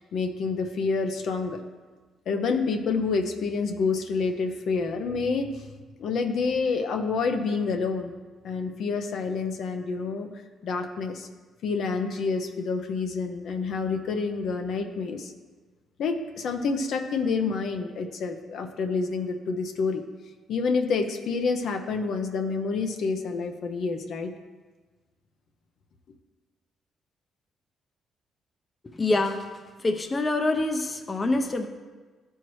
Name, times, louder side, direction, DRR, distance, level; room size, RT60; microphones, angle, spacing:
voice 1, 0.0-1.6 2.3-5.6 6.0-8.1 8.4-10.3 10.6-11.3 11.6-15.3 16.0-20.0 20.5-24.3, left 4 dB, 70° left, 5 dB, 0.7 m, -28 dB
voice 2, 28.9-29.5 29.8-31.7, left 2 dB, 30° left, 6 dB, 0.6 m, -25 dB
13.0 x 4.5 x 3.1 m, 1.4 s
cardioid pair, 90°, 0 cm